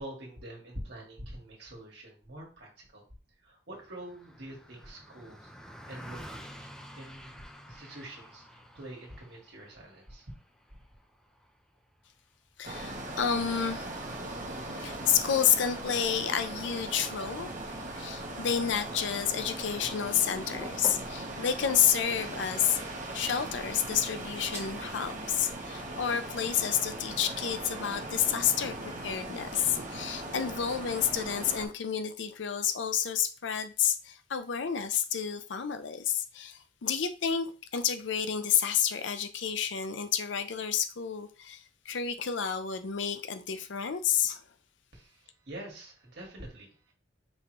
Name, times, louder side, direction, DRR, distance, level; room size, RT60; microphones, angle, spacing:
voice 1, 0.0-3.0 3.4-5.5 5.9-6.6 7.0-7.4 7.7-10.3 44.9-46.9, right 1 dB, 65° right, 1.8 m, -45 dB
Car passing by, 3.7-13.3, equal, 5° left, 0.5 m, -50 dB
voice 2, 12.6-14.0 14.8-17.5 18.0-22.8 23.1-44.4, left 8 dB, 80° left, 0.5 m, -30 dB
sound 1, 12.6-31.7, right 2 dB, 45° right, 1.0 m, -39 dB
sound 2, 20.0-24.9, right 1 dB, 15° right, 1.1 m, -47 dB
5.4 x 3.0 x 3.0 m
head